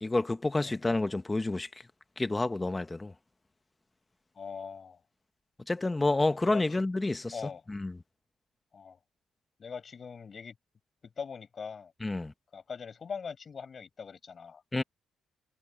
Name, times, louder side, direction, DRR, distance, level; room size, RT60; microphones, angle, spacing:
voice 1, 0.0-1.7 2.2-3.1 5.7-7.3 7.7-7.9 12.0-12.3 14.7-14.8, left 2 dB, 20° left, 1.1 m, -29 dB
voice 2, 4.3-5.0 6.4-6.8 7.3-7.6 8.7-9.0 9.6-10.5 11.0-11.9 12.5-14.6, left 6 dB, 45° left, 5.4 m, -42 dB
cardioid pair, 90°, 0 cm